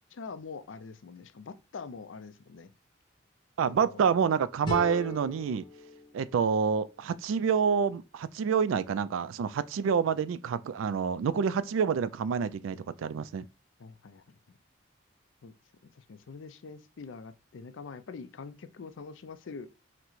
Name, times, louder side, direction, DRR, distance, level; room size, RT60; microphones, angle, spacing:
voice 1, 0.1-2.7 3.6-4.0 13.8-14.4 15.4-15.5 15.8-19.7, left 4 dB, 75° left, 0.4 m, -44 dB
voice 2, 3.6-5.6 6.1-13.5, right 6 dB, 85° right, 0.3 m, -28 dB
sound 1, 4.6-7.5, left 3 dB, 20° left, 1.4 m, -40 dB
5.8 x 2.1 x 3.1 m
head